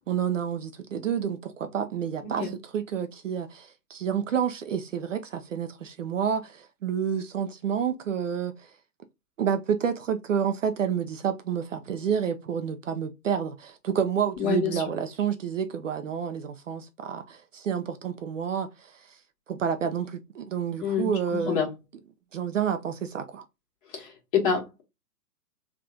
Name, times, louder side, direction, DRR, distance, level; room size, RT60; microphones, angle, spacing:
voice 1, 0.1-8.7 9.4-19.2 19.5-21.7 22.3-23.4, right 8 dB, 55° right, 0.5 m, -29 dB
voice 2, 14.4-14.8 20.8-21.7 23.9-24.8, left 7 dB, 35° left, 1.5 m, -27 dB
3.5 x 2.5 x 3.6 m
figure-of-eight pair, 120°, 47 cm